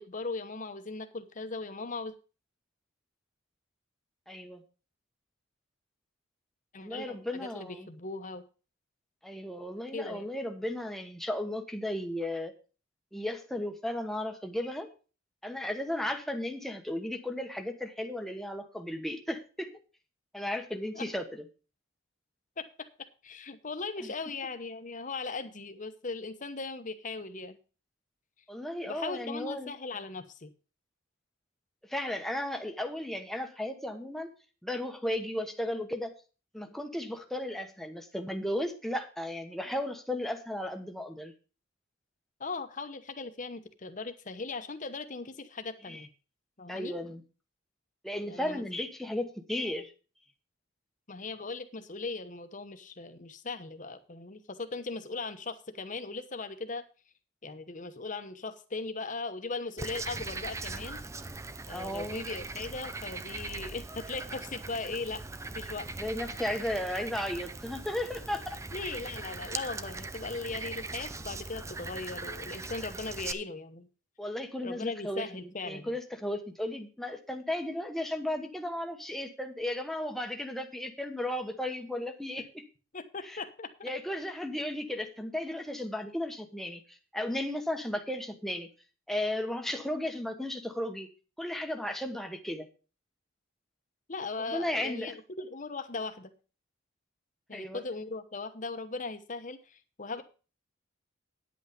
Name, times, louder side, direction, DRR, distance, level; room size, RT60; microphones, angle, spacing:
voice 1, 0.0-2.1 6.7-8.4 9.9-10.3 20.9-21.1 22.6-22.7 23.2-27.6 28.9-30.5 42.4-46.1 46.6-47.0 48.3-48.6 51.1-56.8 57.4-61.0 61.7-65.2 65.5-65.9 68.7-73.9 74.6-75.9 82.4-82.5 82.9-83.9 94.1-96.3 97.5-100.2, left 3 dB, 40° left, 9 dB, 1.0 m, -38 dB
voice 2, 4.3-4.6 6.8-7.9 9.2-12.5 13.1-14.9 15.4-19.7 20.3-21.5 24.0-24.1 28.5-29.7 31.8-34.4 34.6-36.1 36.5-41.3 45.9-46.0 46.7-47.2 48.0-49.9 61.7-62.2 66.0-68.6 74.2-82.6 83.2-83.4 83.8-88.7 89.1-91.1 91.4-92.7 94.4-95.1 97.5-97.8, left 1 dB, ahead, 4 dB, 1.1 m, -35 dB
Frog, 59.8-73.3, right 3 dB, 15° right, 0.5 m, -40 dB
9.8 x 8.3 x 5.1 m, 0.36 s
head